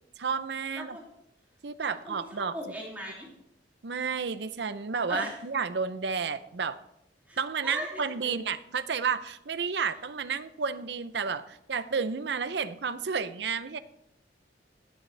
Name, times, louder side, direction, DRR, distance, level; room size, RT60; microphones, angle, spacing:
voice 1, 0.2-1.0 1.6-2.6 3.8-6.8 7.4-13.8, right 5 dB, 70° right, 13 dB, 0.6 m, -31 dB
voice 2, 0.7-1.0 1.9-3.3 5.1-5.4 7.3-8.3, equal, 10° right, -4 dB, 2.7 m, -39 dB
16.0 x 8.9 x 3.3 m, 0.78 s
head